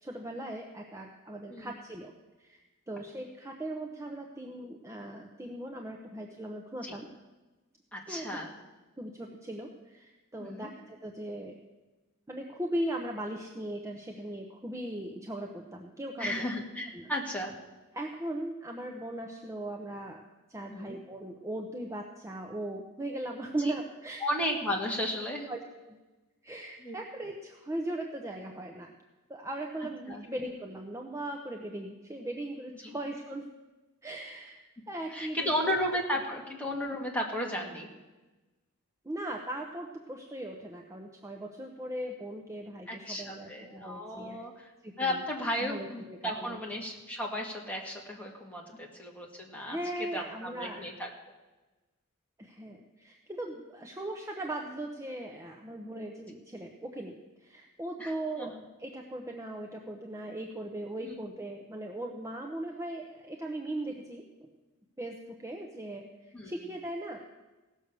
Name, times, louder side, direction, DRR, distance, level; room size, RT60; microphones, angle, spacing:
voice 1, 0.0-2.1 2.4-2.6 2.9-7.1 8.1-8.4 9.0-11.6 12.3-16.5 16.9-17.1 17.9-20.2 20.5-24.2 25.5-25.6 25.9-26.0 26.4-28.9 29.3-33.5 34.0-34.6 34.9-35.7 39.0-44.4 44.8-45.2 45.6-46.6 49.7-50.8 52.4-64.5 65.0-67.2, right 1 dB, 15° right, 2 dB, 0.8 m, -39 dB
voice 2, 7.9-8.5 10.4-10.7 16.2-17.5 20.7-21.0 23.6-23.7 24.2-25.5 26.8-27.0 30.1-30.2 32.8-33.0 35.1-37.9 42.9-49.8 50.1-51.1 58.0-58.5 61.0-61.2 66.3-66.6, left 1 dB, 5° left, -2 dB, 1.9 m, -34 dB
17.0 x 6.4 x 6.8 m, 1.1 s
head